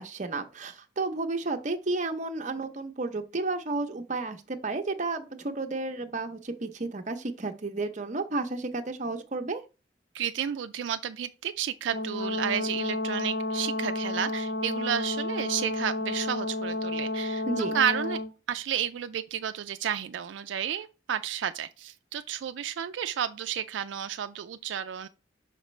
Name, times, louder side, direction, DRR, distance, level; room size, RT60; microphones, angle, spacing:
voice 1, 0.0-9.6 17.5-17.8, right 3 dB, 40° right, 0.7 m, -32 dB
voice 2, 10.1-17.4 17.7-18.2 18.5-25.1, right 9 dB, 80° right, 0.3 m, -31 dB
Brass instrument, 11.9-18.3, left 2 dB, 65° left, 0.6 m, -31 dB
6.0 x 5.0 x 3.2 m
head